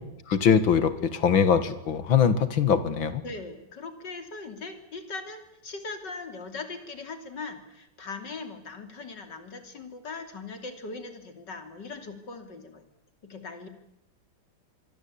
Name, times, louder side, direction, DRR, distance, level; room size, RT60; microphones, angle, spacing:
voice 1, 0.3-3.2, left 7 dB, 90° left, 13 dB, 2.6 m, -22 dB
voice 2, 3.2-12.9 13.2-13.7, left 3 dB, 60° left, 8 dB, 3.7 m, -40 dB
26.0 x 23.0 x 8.7 m, 0.84 s
omnidirectional pair, 2.1 m